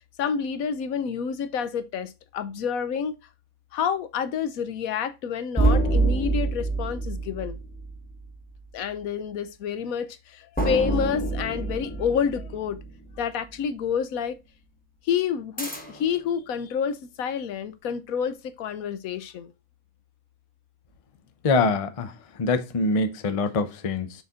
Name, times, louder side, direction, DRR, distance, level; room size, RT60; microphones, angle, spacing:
voice 1, 0.2-3.1 3.7-7.6 8.7-12.8 13.2-14.4 15.0-19.5, left 7 dB, 75° left, 1.1 m, -28 dB
sound 1, 5.6-8.3 10.6-13.2 15.6-16.2, right 2 dB, 5° left, 1.0 m, -26 dB
voice 2, 21.4-22.1 22.4-24.1, left 3 dB, 35° left, 0.6 m, -24 dB
6.4 x 4.1 x 3.6 m
omnidirectional pair, 1.5 m